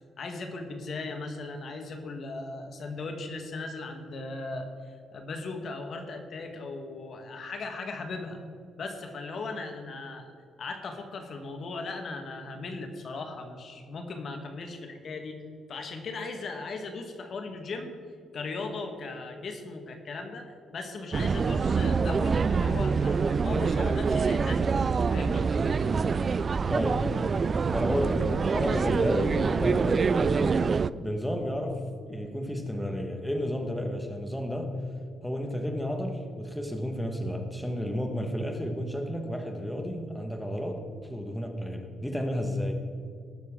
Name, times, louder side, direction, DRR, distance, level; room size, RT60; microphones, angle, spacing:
voice 1, 0.2-8.4 8.8-10.3 10.6-15.4 15.7-17.9 18.3-24.8 25.1-25.5, left 3 dB, 55° left, 5 dB, 1.4 m, -37 dB
sound 1, 21.1-30.9, right 5 dB, 40° right, 0.3 m, -25 dB
voice 2, 26.7-27.2 27.7-30.6 31.0-31.8 32.1-34.7 35.2-40.8 41.1-42.7, equal, 5° left, 4 dB, 1.5 m, -31 dB
19.5 x 6.9 x 3.7 m, 2.3 s
cardioid pair, 90°, 0 cm